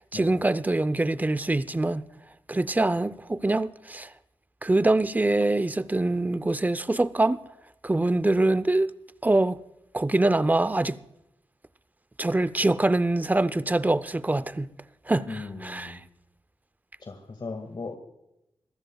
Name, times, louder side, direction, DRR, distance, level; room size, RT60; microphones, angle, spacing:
voice 1, 0.1-2.0 2.5-4.1 4.6-7.4 7.8-8.9 9.2-9.6 9.9-11.0 12.2-14.7 15.1-16.0, right 2 dB, 15° right, 0.6 m, -24 dB
voice 2, 15.3-16.0 17.0-18.0, left 3 dB, 50° left, 2.0 m, -37 dB
25.5 x 15.5 x 2.3 m
wide cardioid pair, 80°, 10 cm